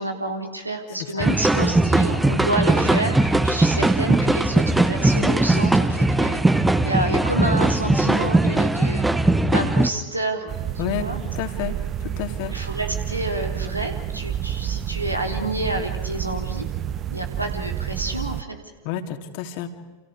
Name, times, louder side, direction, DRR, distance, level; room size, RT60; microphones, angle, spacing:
voice 1, 0.0-9.1 9.5-11.2 11.6-11.7 12.5-16.7 17.1-18.6, right 1 dB, 85° right, 3 dB, 3.8 m, -29 dB
sound 1, 1.2-9.9, right 2 dB, 5° right, 1.3 m, -19 dB
sound 2, 10.5-18.4, right 10 dB, 30° right, 1.0 m, -29 dB
voice 2, 11.3-11.7 12.0-12.6 18.8-19.7, left 10 dB, 45° left, 6 dB, 2.8 m, -30 dB
29.5 x 29.0 x 5.0 m, 1.3 s
figure-of-eight pair, 90°, 0 cm